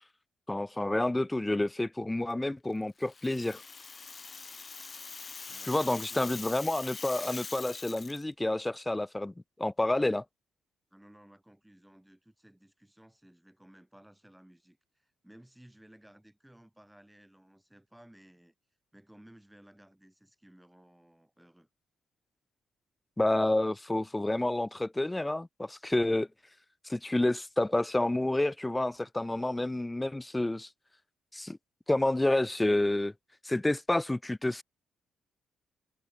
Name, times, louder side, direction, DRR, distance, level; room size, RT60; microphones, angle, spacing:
voice 1, 0.5-3.6 5.7-9.3 9.6-10.2 23.2-26.3 26.9-30.7 31.3-31.6 31.9-33.1 33.4-34.6, left 1 dB, 10° left, 0.4 m, -29 dB
Rattle (instrument), 3.0-8.2, left 4 dB, 35° left, 1.7 m, -43 dB
voice 2, 5.5-6.4 10.9-18.5 18.9-21.7, right 1 dB, 5° right, 7.5 m, -57 dB
cardioid pair, 90°, 0 cm